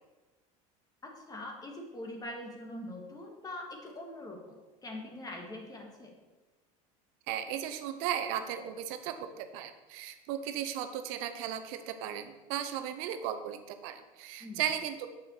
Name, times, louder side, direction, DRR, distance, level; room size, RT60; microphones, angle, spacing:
voice 1, 1.0-6.1 14.4-14.6, left 1 dB, 20° left, 1 dB, 1.8 m, -43 dB
voice 2, 7.3-15.1, right 10 dB, 70° right, 9 dB, 0.7 m, -36 dB
7.2 x 6.2 x 4.5 m, 1.2 s
supercardioid pair, 100°, 18 cm